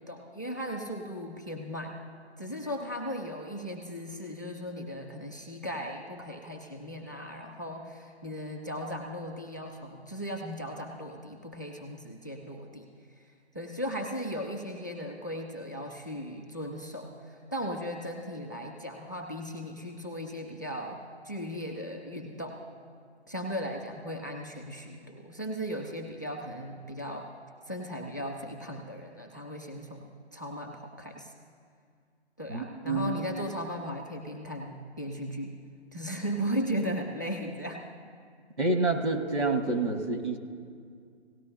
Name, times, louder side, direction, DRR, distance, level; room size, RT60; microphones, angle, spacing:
voice 1, 0.0-2.0 2.4-12.9 13.2-21.0 21.2-22.6 23.3-27.3 27.7-31.3 32.4-35.5 35.9-37.8, equal, 20° left, 1 dB, 0.4 m, -37 dB
voice 2, 32.5-33.1 38.6-40.4, right 2 dB, 80° right, 2 dB, 1.6 m, -28 dB
17.5 x 12.5 x 2.6 m, 2.2 s
figure-of-eight pair, 145°, 33 cm